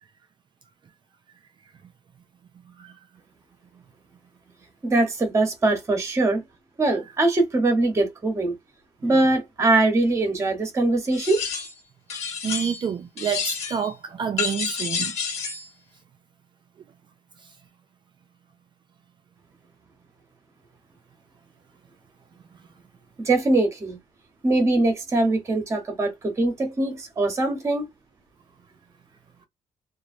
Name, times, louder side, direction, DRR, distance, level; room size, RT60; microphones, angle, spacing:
voice 1, 2.7-3.0 9.0-9.2 12.4-15.2, right 7 dB, 40° right, 0.4 m, -29 dB
voice 2, 4.8-6.4 6.8-8.5 9.0-11.5 23.2-24.0 24.4-27.9, right 2 dB, 20° right, 0.9 m, -22 dB
sound 1, 11.1-11.8 12.1-12.9 13.2-13.9 14.4-15.7, left 5 dB, 55° left, 1.5 m, -29 dB
3.0 x 2.4 x 2.5 m
cardioid pair, 155°, 13 cm